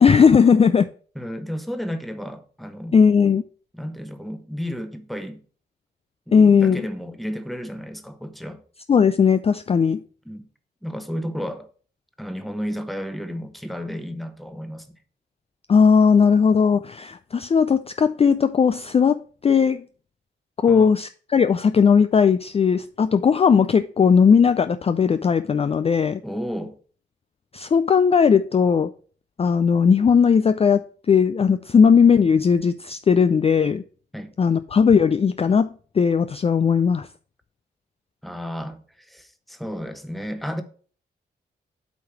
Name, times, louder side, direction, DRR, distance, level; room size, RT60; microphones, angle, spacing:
voice 1, 0.0-0.9 2.9-3.4 6.3-6.8 8.9-10.0 15.7-19.8 20.6-26.2 27.5-28.9 29.4-33.8 34.4-35.7 36.0-37.1, left 6 dB, 35° left, 0.3 m, -17 dB
voice 2, 1.1-3.0 3.7-5.4 6.3-8.6 10.2-10.4 10.8-11.7 12.2-14.9 20.7-21.0 26.2-26.8 34.1-34.3 38.2-40.6, equal, ahead, 1.0 m, -32 dB
8.3 x 3.2 x 5.9 m
cardioid pair, 60°, 19 cm